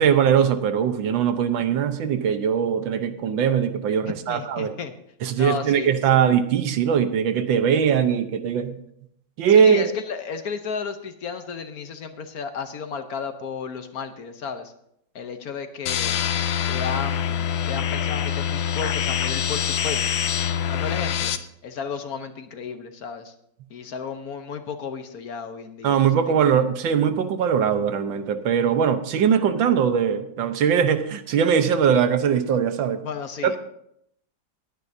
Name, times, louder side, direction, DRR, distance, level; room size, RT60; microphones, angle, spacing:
voice 1, 0.0-4.7 5.2-8.8 9.4-9.9 25.8-33.0 33.4-33.6, right 7 dB, 85° right, 9 dB, 1.7 m, -21 dB
voice 2, 4.3-4.9 5.4-6.2 9.5-14.7 15.1-16.2 16.6-20.0 20.7-21.3 21.6-23.3 23.7-26.1 26.4-26.5 33.0-33.6, left 6 dB, 60° left, 8 dB, 1.2 m, -33 dB
sound 1, 15.9-21.4, left 9 dB, 85° left, 1.5 m, -25 dB
20.5 x 9.7 x 2.7 m, 0.73 s
omnidirectional pair, 2.0 m